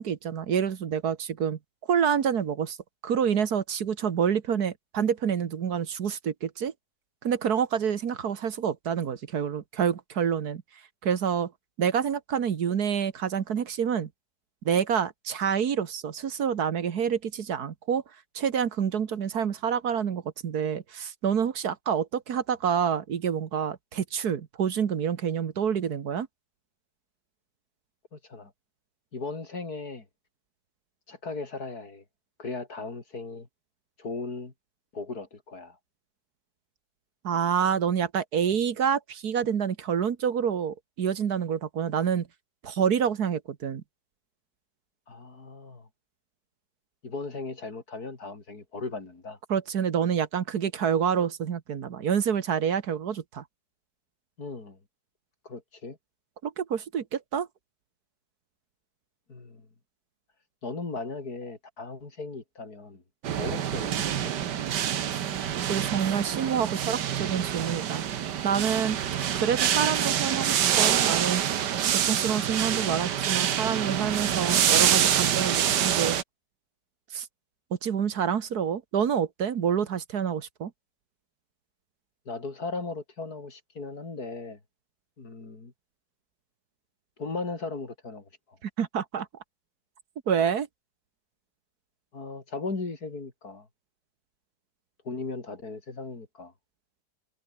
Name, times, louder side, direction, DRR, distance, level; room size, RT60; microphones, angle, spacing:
voice 1, 0.0-1.6 1.9-2.8 3.0-6.7 7.2-10.6 11.0-11.5 11.8-14.1 14.6-18.0 18.3-26.3 37.2-42.3 42.6-43.8 49.5-53.4 56.4-57.5 65.7-68.0 68.4-69.0 69.3-71.4 72.0-76.2 77.1-77.3 77.8-80.7 88.6-89.3 90.3-90.7, right 7 dB, 65° right, 1.8 m, -27 dB
voice 2, 28.1-28.5 29.1-30.1 31.1-32.0 32.4-33.5 34.0-34.5 34.9-35.8 45.1-45.9 47.0-49.4 54.4-54.8 55.4-56.0 59.3-59.7 60.6-63.0 63.3-64.3 82.3-84.6 85.2-85.7 87.2-88.6 92.1-93.7 95.0-96.5, left 3 dB, 60° left, 4.2 m, -37 dB
sound 1, 63.2-76.2, right 9 dB, 80° right, 1.8 m, -26 dB
omnidirectional pair, 1.8 m